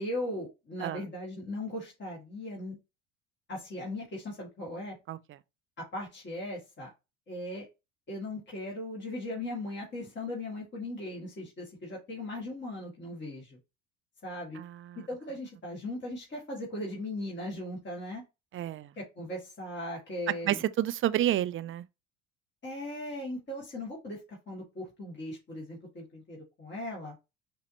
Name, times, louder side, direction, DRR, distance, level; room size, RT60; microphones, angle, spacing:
voice 1, 0.0-2.8 3.5-5.0 5.8-6.9 7.3-7.7 8.1-13.6 14.2-14.6 15.0-18.2 18.9-20.6 22.6-27.1, left 1 dB, 35° left, 2.2 m, -38 dB
voice 2, 14.5-15.1 18.5-18.9 20.4-21.8, right 13 dB, 40° right, 0.5 m, -30 dB
5.3 x 2.9 x 2.9 m
supercardioid pair, 80°, 33 cm